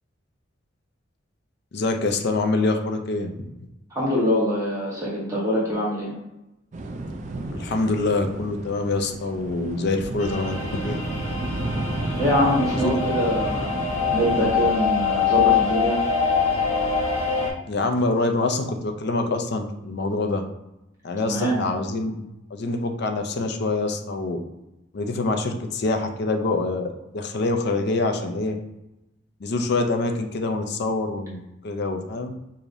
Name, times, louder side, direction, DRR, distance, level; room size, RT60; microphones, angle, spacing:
voice 1, 1.7-3.5 7.5-11.0 12.7-13.0 17.7-20.4 21.0-24.4 24.9-28.6 29.4-32.3, left 2 dB, 55° left, 5 dB, 0.5 m, -25 dB
voice 2, 3.9-6.2 12.2-13.8 14.1-16.0 21.3-21.6, equal, 15° right, -7 dB, 1.1 m, -24 dB
sound 1, 6.7-14.6, right 2 dB, 40° right, 0.4 m, -32 dB
sound 2, 10.2-17.5, left 6 dB, 35° left, 1.2 m, -24 dB
4.8 x 2.7 x 2.6 m, 0.92 s
head